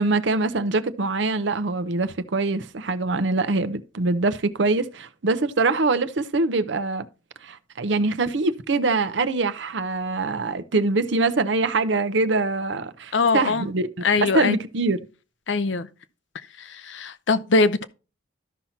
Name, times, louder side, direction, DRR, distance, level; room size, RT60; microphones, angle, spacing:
voice 1, 0.0-7.1 7.4-13.9 14.2-15.0, right 3 dB, 70° right, 0.7 m, -24 dB
voice 2, 13.1-13.7 14.0-14.6 15.5-15.9 16.6-17.9, left 3 dB, 70° left, 0.7 m, -22 dB
13.0 x 5.8 x 2.7 m
head